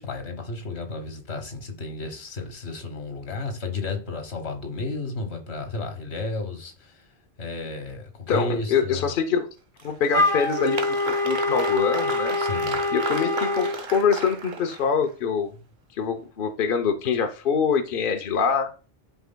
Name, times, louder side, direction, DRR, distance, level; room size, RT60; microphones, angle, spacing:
voice 1, 0.0-6.9 7.4-9.0 12.4-12.8, left 3 dB, 75° left, 1.4 m, -32 dB
voice 2, 8.3-9.5 9.8-12.4 12.9-15.5 15.9-18.7, left 6 dB, 60° left, 0.9 m, -24 dB
Applause, 9.8-15.1, right 4 dB, 55° right, 0.9 m, -34 dB
Wind instrument woodwind instrument, 10.1-13.8, left 2 dB, 25° left, 0.7 m, -25 dB
11.5 x 4.6 x 2.2 m
omnidirectional pair, 1.1 m